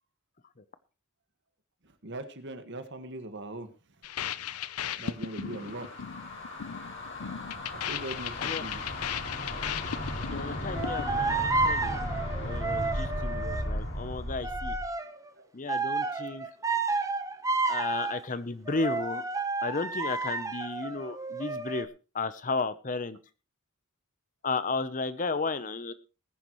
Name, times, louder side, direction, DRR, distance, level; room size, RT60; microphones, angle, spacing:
voice 1, 2.0-3.7 5.0-5.9 7.9-8.8 15.4-15.5 16.6-16.8, right 2 dB, 55° right, 9 dB, 1.7 m, -40 dB
sound 1, 4.0-11.3, left 9 dB, 90° left, 0.7 m, -37 dB
sound 2, 5.1-14.9, left 1 dB, 55° left, 4.6 m, -36 dB
voice 2, 10.2-12.0 12.4-14.7 15.5-16.5 17.7-19.2 19.6-21.9 22.1-23.2 24.4-25.9, left 3 dB, 35° left, 14 dB, 0.8 m, -33 dB
sound 3, 10.7-13.7 14.4-15.3 15.7-18.2 18.7-21.8, right 3 dB, 15° right, 1.1 m, -31 dB
19.5 x 10.5 x 3.1 m, 0.33 s
head